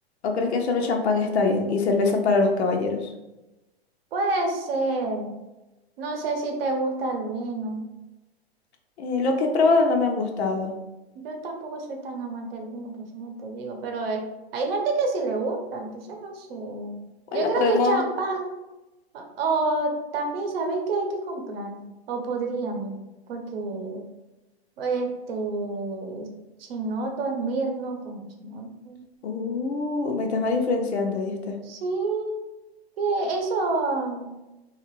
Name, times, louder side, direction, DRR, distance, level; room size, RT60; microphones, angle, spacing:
voice 1, 0.2-3.1 9.0-10.7 17.3-18.0 29.2-31.6, left 3 dB, 85° left, 2 dB, 0.7 m, -23 dB
voice 2, 4.1-5.3 6.0-7.8 11.2-14.2 14.5-17.0 17.3-18.5 19.1-21.8 22.1-23.0 23.3-24.0 24.8-26.3 26.6-29.0 31.6-32.5 33.0-34.3, right 3 dB, 60° right, 3 dB, 0.7 m, -28 dB
2.8 x 2.4 x 2.9 m, 1.0 s
hypercardioid pair, 145°, 32 cm